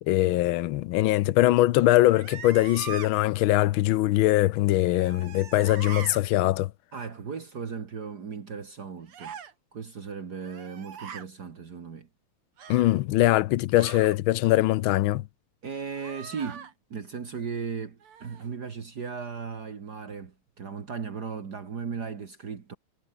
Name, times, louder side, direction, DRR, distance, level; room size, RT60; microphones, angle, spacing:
voice 1, 0.1-6.7 12.7-15.2, left 16 dB, 75° left, 1.4 m, -22 dB
sound 1, 2.0-3.1 4.8-6.2 9.1-9.5 10.4-11.3 12.6-13.0 13.7-14.2 15.9-16.7 18.0-18.5, right 7 dB, 90° right, 2.9 m, -41 dB
voice 2, 6.9-9.4 9.7-12.1 15.6-22.8, right 6 dB, 50° right, 2.3 m, -37 dB
omnidirectional pair, 2.4 m